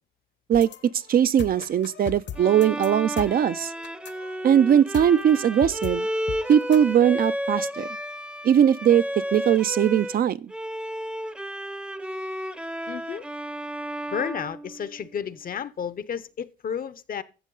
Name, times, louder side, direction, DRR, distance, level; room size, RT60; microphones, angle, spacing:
sound 1, 0.5-6.9, left 8 dB, 65° left, 1.0 m, -40 dB
voice 1, 0.5-3.7 4.4-6.1 6.5-7.9 8.4-9.0 9.3-10.5, right 9 dB, 50° right, 0.4 m, -20 dB
Bowed string instrument, 2.3-10.2 10.5-15.3, equal, 5° right, 0.6 m, -33 dB
voice 2, 12.9-13.3 14.1-17.2, left 7 dB, 45° left, 0.7 m, -32 dB
12.5 x 7.4 x 3.8 m
cardioid pair, 90°, 20 cm